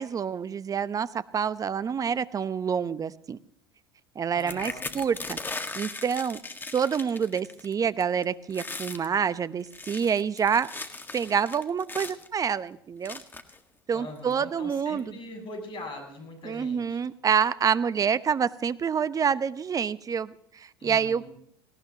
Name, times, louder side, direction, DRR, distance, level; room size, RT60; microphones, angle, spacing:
voice 1, 0.0-3.4 4.2-5.4 5.7-6.4 6.7-10.7 11.1-13.2 13.9-15.2 16.4-21.3, right 7 dB, 30° right, 15 dB, 0.8 m, -27 dB
voice 2, 4.3-4.9 13.9-17.0 20.8-21.3, left 1 dB, 45° left, 5 dB, 7.3 m, -42 dB
sound 1, 4.4-7.7 8.0-8.2 8.5-9.1 9.6-12.3 13.0-13.6 14.3-14.4 14.7-15.0, left 3 dB, 15° left, 1.7 m, -38 dB
18.5 x 17.5 x 2.9 m, 0.70 s
hypercardioid pair, 75°, 12 cm